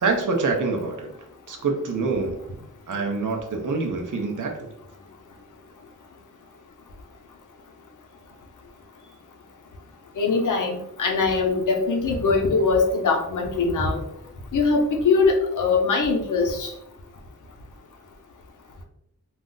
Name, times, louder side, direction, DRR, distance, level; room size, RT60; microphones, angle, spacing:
voice 1, 0.0-1.1 1.5-2.4 2.9-4.6, right 4 dB, 90° right, 2 dB, 0.6 m, -25 dB
voice 2, 10.1-14.0 14.5-16.7, left 4 dB, 80° left, 2 dB, 0.6 m, -22 dB
2.4 x 2.0 x 3.7 m, 0.80 s
wide cardioid pair, 70°, 30 cm